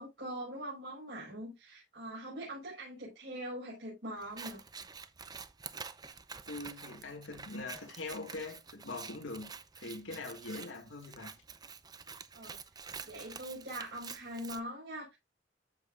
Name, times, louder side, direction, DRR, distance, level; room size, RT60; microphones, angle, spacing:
voice 1, 0.0-4.6 12.3-12.6 13.0-15.2, equal, 65° right, 5.7 m, -42 dB
Scissors, 4.2-14.6, right 5 dB, 20° right, 0.5 m, -48 dB
voice 2, 6.5-9.5 9.8-11.3, left 3 dB, 85° left, 2.0 m, -42 dB
14.0 x 5.4 x 2.5 m
head